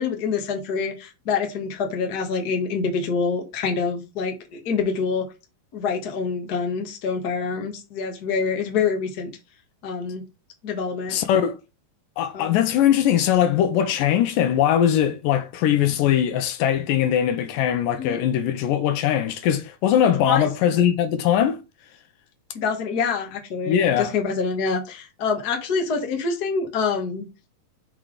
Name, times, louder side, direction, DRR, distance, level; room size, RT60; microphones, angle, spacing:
voice 1, 0.0-5.2 5.7-9.3 9.8-10.2 10.6-11.1 12.3-12.5 18.0-18.2 20.2-20.5 22.5-27.2, left 5 dB, 45° left, 1.3 m, -26 dB
voice 2, 11.1-11.5 12.2-21.6 23.7-24.1, left 10 dB, 80° left, 2.3 m, -21 dB
5.9 x 4.1 x 4.8 m
omnidirectional pair, 4.0 m